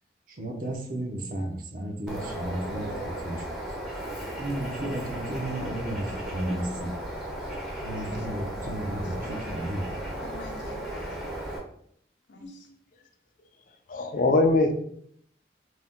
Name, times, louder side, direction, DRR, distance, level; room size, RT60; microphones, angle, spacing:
voice 1, 0.3-3.5 4.4-6.9 7.8-10.1, right 1 dB, 45° right, 2 dB, 0.6 m, -33 dB
Bird, 2.1-11.6, right 1 dB, ahead, 0.5 m, -35 dB
voice 2, 7.8-8.3 9.0-9.4 10.2-11.2 12.3-12.7, left 2 dB, 80° left, 1 dB, 0.7 m, -45 dB
voice 3, 13.9-14.7, left 2 dB, 45° left, 6 dB, 0.4 m, -22 dB
2.7 x 2.2 x 3.5 m, 0.65 s
head